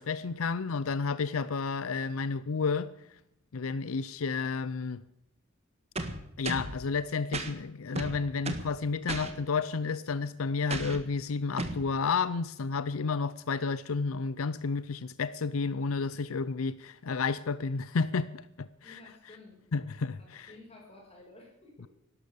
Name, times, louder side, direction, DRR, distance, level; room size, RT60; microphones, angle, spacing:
voice 1, 0.0-2.9 3.5-5.0 6.4-19.0 19.7-20.5, left 4 dB, 85° left, 0.6 m, -31 dB
sound 1, 6.0-6.8 7.3-7.5 8.0-8.7 9.1-9.3 10.7-11.0 11.6-11.8, right 2 dB, 30° right, 1.6 m, -34 dB
voice 2, 18.8-19.7 20.2-21.9, left 2 dB, 30° left, 5.9 m, -53 dB
12.5 x 12.0 x 8.3 m
head